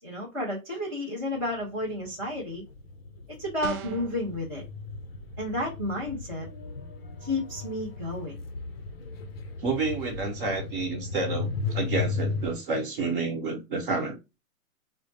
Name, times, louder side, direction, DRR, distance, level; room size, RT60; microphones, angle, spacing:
voice 1, 0.0-2.6 3.4-4.6 5.4-6.5 7.2-8.4, left 1 dB, 10° right, 0.5 m, -31 dB
sound 1, 1.4-1.5 1.8-12.6, left 4 dB, 45° left, 0.5 m, -35 dB
sound 2, 3.6-4.2, right 8 dB, 80° right, 0.5 m, -35 dB
voice 2, 9.6-14.2, right 3 dB, 35° right, 1.0 m, -30 dB
3.8 x 2.0 x 3.2 m
hypercardioid pair, 160°, 43 cm